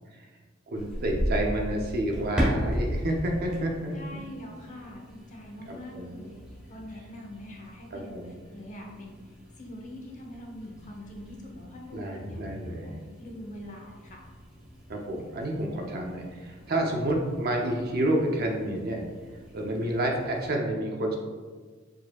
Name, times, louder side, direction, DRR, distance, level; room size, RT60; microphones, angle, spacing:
sound 1, 0.7-20.5, equal, 5° right, 1.1 m, -37 dB
voice 1, 0.7-4.2 5.7-6.3 7.9-8.3 11.9-12.9 14.9-19.0 19.5-21.2, right 1 dB, 50° right, 1 dB, 0.6 m, -29 dB
voice 2, 3.9-14.2, left 1 dB, 40° left, 0 dB, 0.8 m, -44 dB
4.8 x 4.3 x 2.3 m, 1.4 s
head